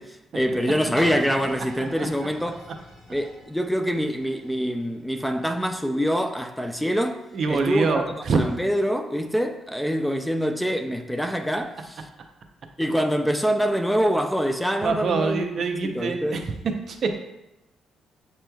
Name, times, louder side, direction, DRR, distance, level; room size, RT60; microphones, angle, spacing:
voice 1, 0.0-2.6 3.1-7.2 7.5-12.1 12.8-15.5 15.8-16.4, equal, ahead, 0.3 m, -25 dB
sound 1, 1.0-6.7 7.3-7.4, equal, 40° left, 1.1 m, -43 dB
voice 2, 1.8-2.1 7.3-8.4 14.8-16.6 16.9-17.2, right 4 dB, 55° right, 0.5 m, -25 dB
7.5 x 3.1 x 2.2 m
cardioid pair, 90°, 0 cm